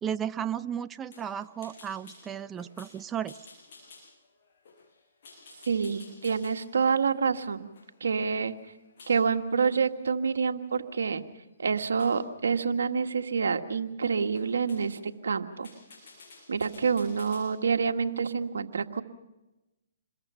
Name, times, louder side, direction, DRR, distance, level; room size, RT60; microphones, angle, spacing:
voice 1, 0.0-3.4, right 9 dB, 15° right, 12 dB, 0.7 m, -34 dB
sound 1, 1.1-9.2 9.6-9.9 10.4-11.1 12.0-12.3 13.2-13.4 13.7-13.8 14.3-15.1 15.5-17.5, left 4 dB, 55° left, 6.2 m, -53 dB
voice 2, 5.7-7.7 8.0-8.5 9.1-11.2 11.6-15.7 16.5-19.0, right 5 dB, 80° right, 7 dB, 1.6 m, -27 dB
28.0 x 21.5 x 5.7 m, 0.99 s
hypercardioid pair, 145°, 0 cm